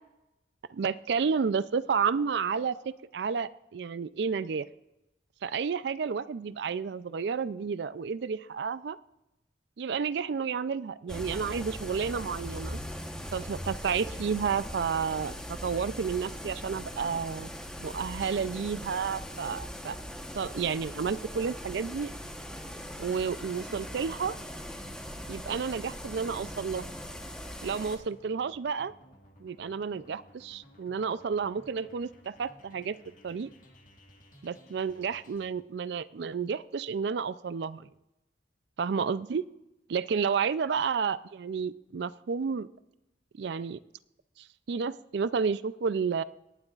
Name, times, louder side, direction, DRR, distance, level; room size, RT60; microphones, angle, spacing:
voice 1, 0.7-4.7 5.4-9.0 9.8-12.8 13.3-17.5 17.8-20.0 20.3-22.1 23.0-24.3 25.3-26.9 27.6-28.9 29.4-33.0 33.2-33.5 34.4-37.9 38.8-39.4 39.9-42.7 43.4-43.8 44.4-46.2, right 6 dB, 60° right, 16 dB, 0.4 m, -31 dB
sound 1, 11.1-28.0, equal, 5° left, 1.0 m, -40 dB
sound 2, 20.7-35.5, equal, 45° left, 1.7 m, -57 dB
18.0 x 11.5 x 2.4 m, 0.92 s
head